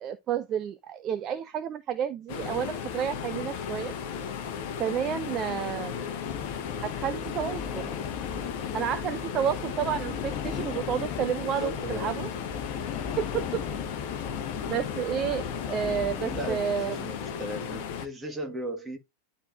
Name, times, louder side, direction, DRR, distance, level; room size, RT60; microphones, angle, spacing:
voice 1, 0.0-3.9 4.8-5.9 6.8-7.9 8.7-12.3 13.2-13.6 14.7-17.0, right 9 dB, 30° right, 0.6 m, -30 dB
sound 1, 2.3-18.1, left 7 dB, 45° left, 1.1 m, -35 dB
sound 2, 6.2-16.6, left 8 dB, 30° left, 0.6 m, -38 dB
voice 2, 11.4-12.5 16.3-19.0, right 1 dB, 15° right, 1.9 m, -37 dB
11.0 x 4.2 x 2.7 m
figure-of-eight pair, 90°, 0 cm